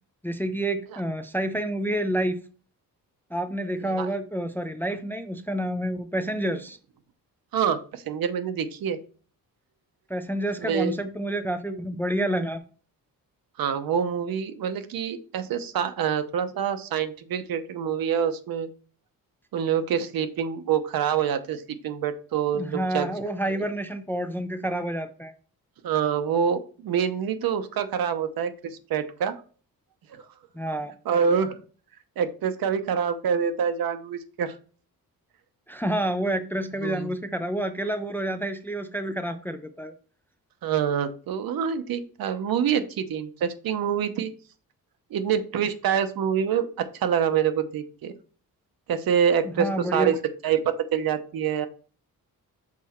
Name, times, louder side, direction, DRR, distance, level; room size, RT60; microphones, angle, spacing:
voice 1, 0.2-2.4 3.3-6.8 10.1-12.6 22.5-25.3 30.5-30.9 35.7-39.9 49.4-50.1, right 1 dB, 5° left, 0.4 m, -29 dB
voice 2, 3.8-4.1 7.5-9.0 10.6-10.9 13.6-18.7 19.5-23.1 25.8-29.3 30.1-30.2 31.1-31.6 32.2-34.6 36.8-37.1 40.6-44.3 45.1-48.1 48.9-50.2 50.4-51.7, right 8 dB, 75° right, 0.9 m, -26 dB
6.2 x 4.2 x 4.3 m
wide cardioid pair, 150°, 36 cm